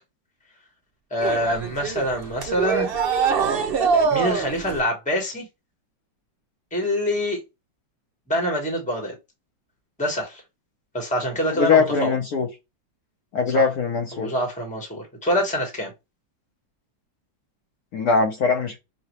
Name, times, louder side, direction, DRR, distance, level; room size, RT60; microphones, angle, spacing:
voice 1, 1.1-2.9 4.1-5.5 6.7-7.4 8.3-9.1 10.0-10.4 10.9-12.2 13.5-13.7 14.1-15.9, equal, 5° left, 1.0 m, -25 dB
sound 1, 1.2-4.8, right 5 dB, 60° right, 0.6 m, -23 dB
voice 2, 11.5-12.5 13.3-14.3 17.9-18.8, left 4 dB, 60° left, 1.2 m, -21 dB
5.7 x 2.3 x 3.0 m
omnidirectional pair, 2.0 m